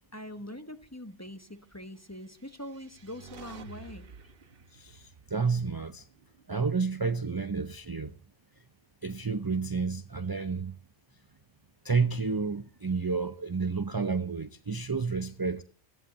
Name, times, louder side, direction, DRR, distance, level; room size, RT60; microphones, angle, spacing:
voice 1, 0.1-4.1, left 1 dB, 15° left, 1.2 m, -43 dB
sound 1, 2.2-6.6, right 5 dB, 50° right, 1.2 m, -51 dB
voice 2, 4.7-6.1 6.5-8.1 9.0-10.7 11.8-15.6, right 4 dB, 25° right, 0.5 m, -30 dB
16.5 x 14.5 x 4.2 m
omnidirectional pair, 1.3 m